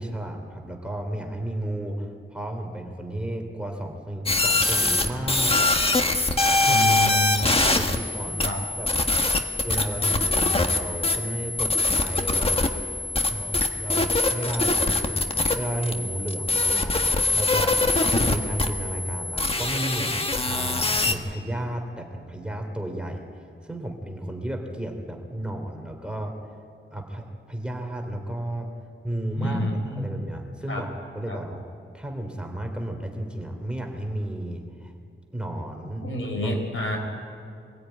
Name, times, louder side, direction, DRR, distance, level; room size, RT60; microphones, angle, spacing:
voice 1, 0.0-5.7 6.6-8.9 9.6-12.6 13.3-15.2 15.5-17.8 18.3-26.5 26.9-28.7 29.0-29.7 29.9-30.9 31.1-31.6 31.9-34.9 35.3-36.1 36.4-36.5, right 1 dB, 5° right, 3 dB, 2.9 m, -33 dB
sound 1, 4.3-21.1, left 2 dB, 25° left, 1.5 m, -23 dB
voice 2, 6.6-7.6 8.4-8.6 29.4-30.1 30.7-30.8 31.3-31.4 36.0-37.0, left 1 dB, 75° left, 2 dB, 4.5 m, -28 dB
23.0 x 16.0 x 9.2 m, 2.4 s
wide cardioid pair, 90°, 21 cm